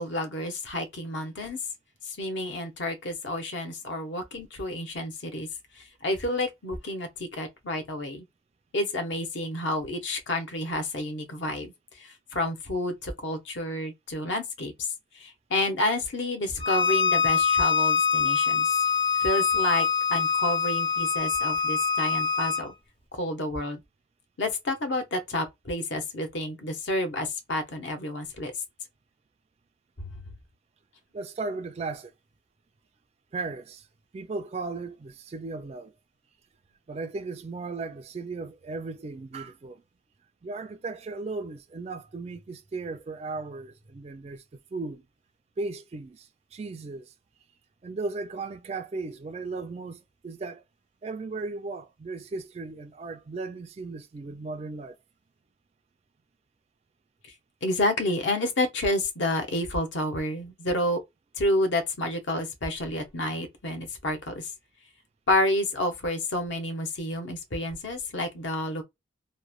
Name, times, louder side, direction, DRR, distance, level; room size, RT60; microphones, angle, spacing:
voice 1, 0.0-1.6 2.1-5.5 5.8-8.2 8.7-11.7 12.0-14.9 15.2-18.7 19.2-22.7 23.1-23.8 24.4-28.5 30.0-30.1 57.6-61.0 61.4-64.5 65.3-68.8, left 1 dB, 65° left, 0.8 m, -29 dB
Bowed string instrument, 16.6-22.7, left 6 dB, 25° left, 0.5 m, -24 dB
voice 2, 31.1-32.1 33.3-33.9 34.1-35.9 36.9-39.8 40.4-44.4 44.7-45.0 45.6-47.1 47.8-50.6 51.0-55.0, right 3 dB, 30° right, 0.3 m, -36 dB
3.0 x 2.1 x 2.3 m
head